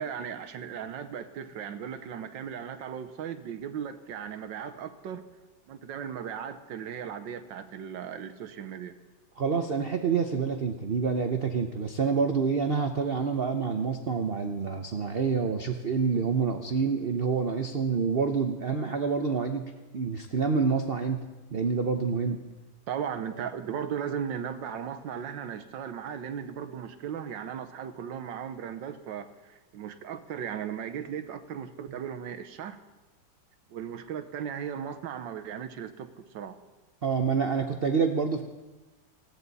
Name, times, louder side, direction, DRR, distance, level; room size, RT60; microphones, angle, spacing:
voice 1, 0.0-5.2 5.7-8.9 22.9-32.8 33.7-36.6, right 8 dB, 80° right, 10 dB, 1.6 m, -37 dB
voice 2, 9.4-19.6 19.9-21.2 21.5-22.4 37.0-38.4, right 5 dB, 50° right, 6 dB, 0.7 m, -27 dB
20.0 x 15.5 x 4.1 m, 1.1 s
omnidirectional pair, 2.0 m